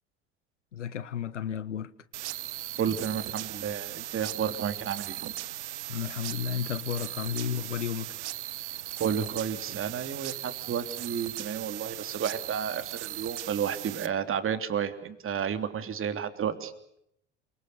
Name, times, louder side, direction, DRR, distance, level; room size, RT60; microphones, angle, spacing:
voice 1, 0.7-1.9 5.9-8.1, left 9 dB, 80° left, 1.3 m, -33 dB
sound 1, 2.1-14.1, right 15 dB, 70° right, 1.1 m, -38 dB
voice 2, 2.8-5.3 9.0-16.7, right 8 dB, 35° right, 3.3 m, -31 dB
28.5 x 25.0 x 7.0 m
figure-of-eight pair, 70°, 36 cm